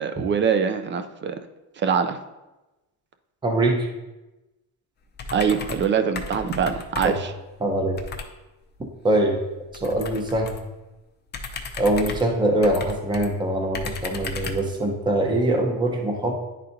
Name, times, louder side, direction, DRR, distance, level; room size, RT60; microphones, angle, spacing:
voice 1, 0.0-1.4 1.8-2.2 5.3-7.3, right 6 dB, 30° right, 9 dB, 0.4 m, -23 dB
voice 2, 3.4-3.9 7.0-7.2 7.6-8.0 9.0-9.4 9.7-10.5 11.8-16.3, right 1 dB, 10° right, 1 dB, 0.8 m, -23 dB
sound 1, 5.2-5.9 6.2-7.3 8.0-8.3 9.7-10.7 11.3-13.3 13.7-14.7, left 4 dB, 30° left, 0.6 m, -34 dB
10.5 x 4.2 x 2.6 m, 1.0 s
cardioid pair, 150°, 37 cm